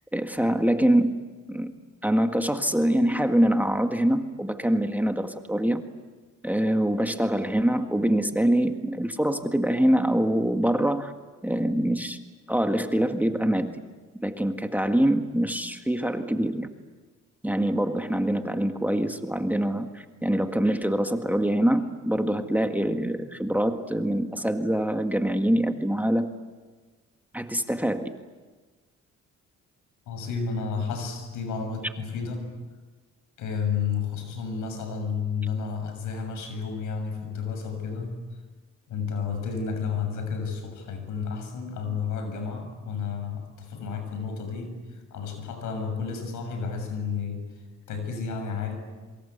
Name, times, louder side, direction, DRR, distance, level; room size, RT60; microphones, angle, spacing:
voice 1, 0.1-1.2 1.5-1.7 2.0-5.8 6.4-11.1 11.4-12.2 12.5-13.8 14.2-16.7 17.4-26.3 27.3-28.2, right 1 dB, 5° right, 6 dB, 1.8 m, -24 dB
voice 2, 30.1-32.5 33.4-38.2 38.9-47.4 47.9-48.8, left 5 dB, 85° left, 6 dB, 6.9 m, -31 dB
26.5 x 24.5 x 8.2 m, 1.3 s
cardioid pair, 90°, 30 cm